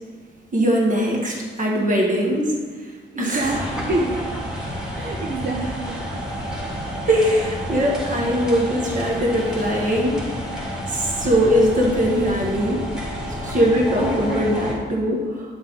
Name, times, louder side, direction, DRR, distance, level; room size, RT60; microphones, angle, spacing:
voice 1, 0.5-2.6 2.8-2.9 3.2-3.6 7.1-10.2 10.9-12.9 13.4-15.6, equal, 40° right, -2 dB, 1.7 m, -21 dB
voice 2, 3.1-4.3 4.9-6.0, right 2 dB, 60° right, -2 dB, 1.0 m, -26 dB
sound 1, 3.4-14.7, equal, 5° right, 1.8 m, -30 dB
9.0 x 7.0 x 4.1 m, 1.5 s
wide cardioid pair, 140°, 20 cm